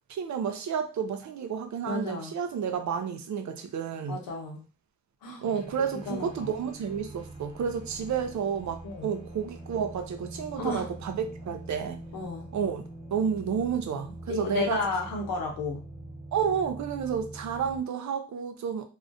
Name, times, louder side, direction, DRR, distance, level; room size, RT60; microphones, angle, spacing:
voice 1, 0.1-4.2 5.4-12.0 12.5-14.8 16.3-18.9, right 7 dB, 60° right, 0.5 m, -31 dB
voice 2, 1.8-2.4 4.1-4.6 5.2-5.4 5.9-6.5 8.8-9.1 10.5-10.8 12.1-12.5 14.3-15.8, left 3 dB, 85° left, 0.8 m, -32 dB
sound 1, 5.4-17.8, right 1 dB, 15° right, 0.9 m, -44 dB
2.3 x 2.1 x 2.5 m
supercardioid pair, 50°, 33 cm